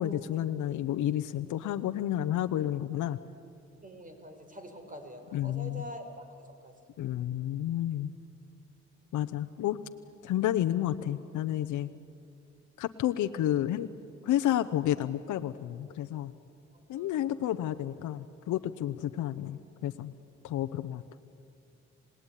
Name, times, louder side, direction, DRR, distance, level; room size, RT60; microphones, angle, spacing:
voice 1, 0.0-3.2 5.3-5.9 7.0-8.1 9.1-9.8 10.2-11.9 12.8-13.9 14.2-16.3 16.9-20.1 20.4-21.0, left 12 dB, 75° left, 8 dB, 0.9 m, -30 dB
voice 2, 3.8-6.4 6.6-6.7 17.0-17.3, equal, 25° right, 6 dB, 4.7 m, -45 dB
27.0 x 19.5 x 10.0 m, 2.7 s
cardioid pair, 90°, 30 cm